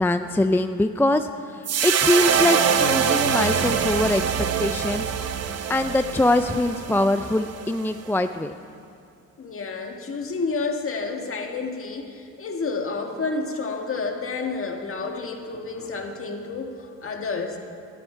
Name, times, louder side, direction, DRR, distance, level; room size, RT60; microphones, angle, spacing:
voice 1, 0.0-5.0 5.7-8.5, left 1 dB, 5° left, 9 dB, 0.4 m, -23 dB
sound 1, 1.7-8.0, right 7 dB, 55° right, 1.0 m, -24 dB
voice 2, 9.4-17.6, left 4 dB, 45° left, 3 dB, 1.8 m, -30 dB
17.5 x 12.0 x 4.5 m, 2.4 s
cardioid pair, 90°, 30 cm